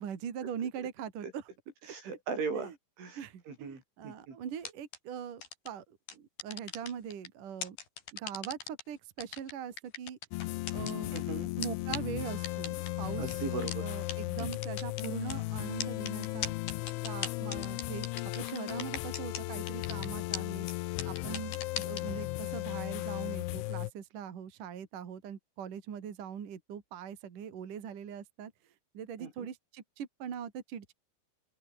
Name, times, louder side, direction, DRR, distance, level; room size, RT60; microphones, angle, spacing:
voice 1, 0.0-1.4 2.5-2.8 3.1-7.8 8.1-10.2 10.7-11.1 11.6-16.5 17.0-20.7 21.0-28.5 28.9-30.9, right 8 dB, 50° right, 3.9 m, -42 dB
voice 2, 1.9-2.7 3.0-4.4 11.1-11.5 13.2-13.9 14.4-14.5 29.2-29.5, right 5 dB, 85° right, 9.9 m, -38 dB
sound 1, 4.6-5.0 5.4-5.7 6.1-7.3 7.6-8.8 9.2-11.2 11.6-11.7 11.9-12.0 12.4-12.9 13.3-13.4 13.7-13.8 14.1-14.2 14.4-15.3 15.8-19.4 19.7-20.1 20.3-20.4 20.7-20.8 21.0-22.0, left 6 dB, 55° left, 5.5 m, -38 dB
sound 2, 10.3-23.9, left 20 dB, 85° left, 3.2 m, -36 dB
open air
omnidirectional pair, 5.3 m